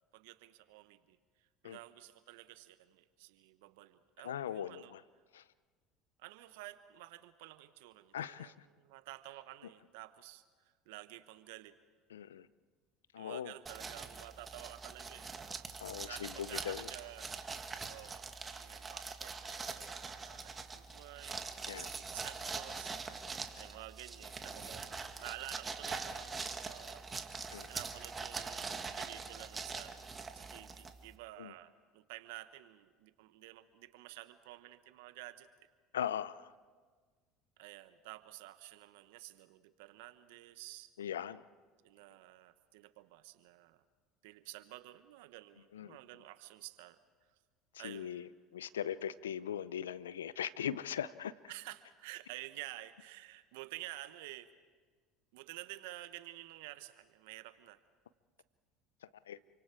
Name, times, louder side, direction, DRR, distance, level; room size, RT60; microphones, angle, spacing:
voice 1, 0.1-4.9 6.2-11.7 13.2-15.3 16.0-17.3 17.8-18.3 18.6-21.4 21.8-27.0 27.7-30.1 30.3-35.5 37.6-40.9 41.8-43.8 44.2-47.0 47.8-48.3 51.5-54.5 55.3-57.8, right 17 dB, 75° right, 12 dB, 1.2 m, -51 dB
voice 2, 4.2-5.0 5.3-5.4 8.1-8.5 12.1-12.5 13.1-13.5 15.8-16.9 21.7-21.9 27.5-27.7 31.4-31.5 35.9-36.5 41.0-41.4 45.7-46.0 47.7-48.3 48.5-51.3 59.3-59.4, left 9 dB, 90° left, 17 dB, 0.6 m, -39 dB
sound 1, 13.7-31.2, right 4 dB, 25° right, 1.9 m, -43 dB
28.5 x 25.0 x 4.8 m, 1.5 s
hypercardioid pair, 75°, 0 cm